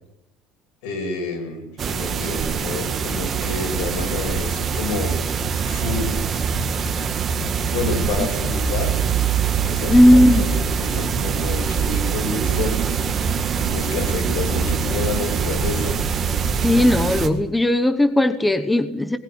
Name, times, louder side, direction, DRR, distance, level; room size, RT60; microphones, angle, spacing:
voice 1, 0.8-5.1 5.6-6.4 7.7-8.9 9.6-13.0 13.5-15.9, left 4 dB, 85° left, 7.9 m, -29 dB
sound 1, 1.8-17.3, right 6 dB, 25° right, 2.0 m, -23 dB
voice 2, 9.9-10.5 16.6-19.2, left 1 dB, 5° left, 0.9 m, -16 dB
20.5 x 18.5 x 9.5 m
cardioid pair, 175°, 0 cm